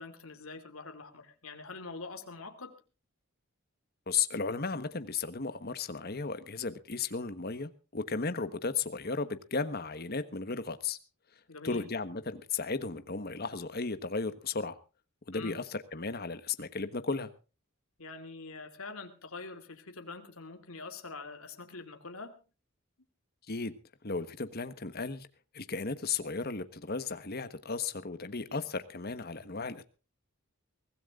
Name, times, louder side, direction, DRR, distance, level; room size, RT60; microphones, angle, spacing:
voice 1, 0.0-2.8 11.5-11.9 15.3-15.6 18.0-22.4, left 3 dB, 80° left, 2.6 m, -44 dB
voice 2, 4.1-11.0 11.6-14.8 15.3-17.3 23.5-23.7 24.0-25.3 25.5-29.8, left 4 dB, 45° left, 1.2 m, -35 dB
23.5 x 16.5 x 2.5 m
head